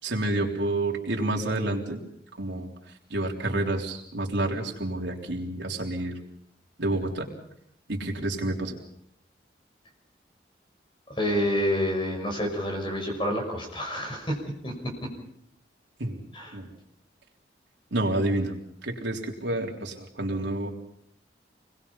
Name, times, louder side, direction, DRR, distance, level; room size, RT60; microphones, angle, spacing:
voice 1, 0.0-2.0 2.4-2.7 3.1-6.2 6.8-7.3 7.9-8.8 16.0-16.2 16.5-16.7 17.9-18.5 18.8-20.7, right 2 dB, 85° right, 0 dB, 3.7 m, -29 dB
voice 2, 11.1-15.1 16.3-16.6, equal, 25° left, 2 dB, 6.0 m, -29 dB
26.5 x 21.0 x 5.6 m, 0.71 s
head